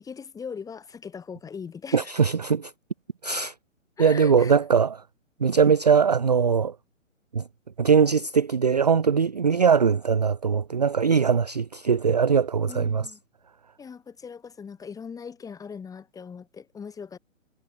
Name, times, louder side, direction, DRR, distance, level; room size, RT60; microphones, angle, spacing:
voice 1, 0.0-2.1 4.0-4.6 12.7-13.2 13.8-17.2, left 6 dB, 10° left, 4.3 m, -40 dB
voice 2, 1.9-2.7 3.2-3.5 4.0-5.0 5.4-6.7 7.3-7.4 7.8-13.1, right 6 dB, 35° right, 0.4 m, -21 dB
figure-of-eight pair, 130°, 40 cm